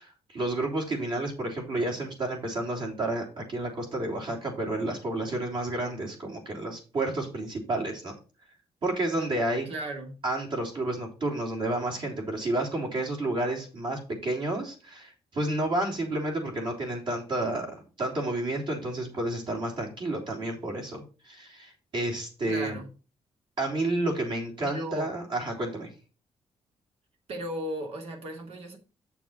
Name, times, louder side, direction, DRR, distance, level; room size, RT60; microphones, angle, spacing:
voice 1, 0.0-8.1 8.8-9.7 10.2-22.7 23.6-25.9, right 2 dB, 50° right, 3.5 m, -30 dB
voice 2, 9.6-10.2 22.4-22.9 24.6-25.1 27.3-28.8, right 1 dB, 70° right, 2.4 m, -36 dB
7.6 x 7.0 x 4.2 m
cardioid pair, 145°, 10 cm